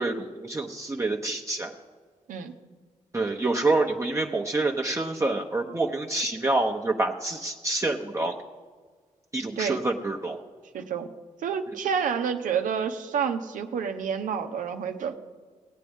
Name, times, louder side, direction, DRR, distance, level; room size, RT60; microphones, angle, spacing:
voice 1, 0.0-1.7 3.1-8.3 9.3-10.4, right 2 dB, 20° right, 0 dB, 0.9 m, -27 dB
voice 2, 10.7-11.1 11.4-15.2, right 7 dB, 85° right, 7 dB, 0.8 m, -29 dB
18.5 x 8.4 x 3.6 m, 1.5 s
cardioid pair, 60°, 13 cm